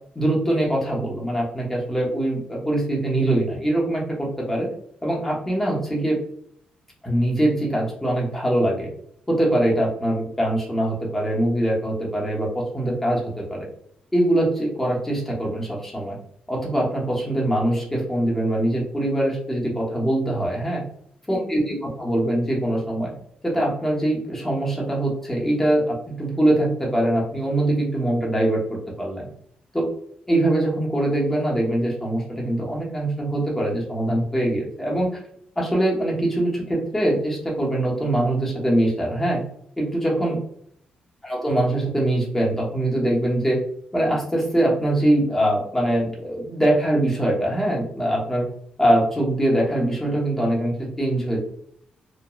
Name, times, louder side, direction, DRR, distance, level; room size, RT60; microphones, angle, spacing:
voice 1, 0.1-4.7 5.0-6.2 7.0-8.9 9.3-13.7 14.1-16.2 16.5-20.8 21.3-23.1 23.4-28.6 29.0-29.3 29.7-29.9 30.3-35.2 35.6-39.4 39.8-40.4 41.2-43.6 43.9-48.4 48.8-51.4, right 1 dB, 10° left, -3 dB, 0.9 m, -23 dB
3.0 x 2.2 x 2.3 m, 0.68 s
cardioid pair, 105°, 3 cm